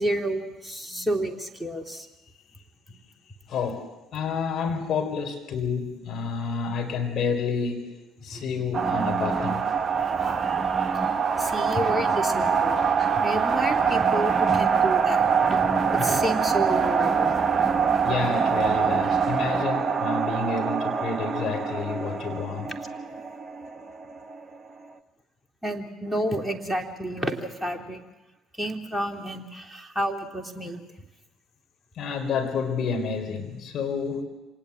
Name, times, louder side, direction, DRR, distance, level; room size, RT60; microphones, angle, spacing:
voice 1, 0.0-2.1 8.3-8.6 9.9-10.3 10.5-11.1 11.4-17.4 25.6-28.0 28.6-30.8, right 1 dB, ahead, 3 dB, 3.0 m, -30 dB
voice 2, 3.5-7.9 8.2-9.6 18.0-22.7 32.0-34.2, left 5 dB, 50° left, 4 dB, 4.3 m, -29 dB
sound 1, 8.7-24.6, right 6 dB, 30° right, 1.1 m, -24 dB
26.0 x 19.0 x 7.6 m, 1.1 s
figure-of-eight pair, 55°, 0 cm